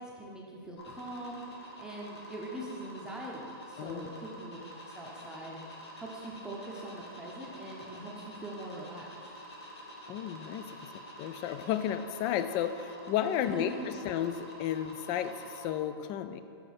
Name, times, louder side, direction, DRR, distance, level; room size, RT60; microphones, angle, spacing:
voice 1, 0.0-1.4 1.8-4.6 4.9-5.6 6.0-9.1 13.4-14.1, right 1 dB, 5° right, -3 dB, 0.8 m, -42 dB
sound 1, 0.8-15.6, equal, 80° left, 1.4 m, -48 dB
voice 2, 3.8-4.1 10.1-10.9 11.2-16.4, left 10 dB, 30° left, 10 dB, 0.3 m, -33 dB
6.8 x 5.5 x 4.2 m, 2.6 s
hypercardioid pair, 120°, 14 cm